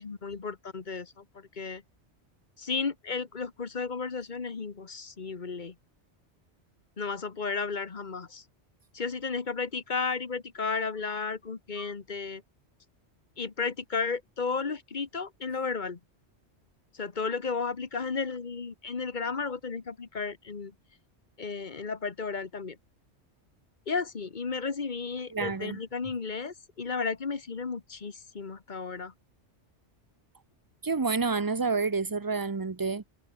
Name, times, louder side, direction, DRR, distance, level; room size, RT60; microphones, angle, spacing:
voice 1, 0.0-1.8 2.6-5.7 7.0-8.4 8.9-12.4 13.4-16.0 16.9-20.7 21.4-22.8 23.9-29.1, left 4 dB, 45° left, 1.4 m, -33 dB
voice 2, 25.3-25.8 30.8-33.0, right 4 dB, 20° right, 0.7 m, -29 dB
omnidirectional pair, 1.2 m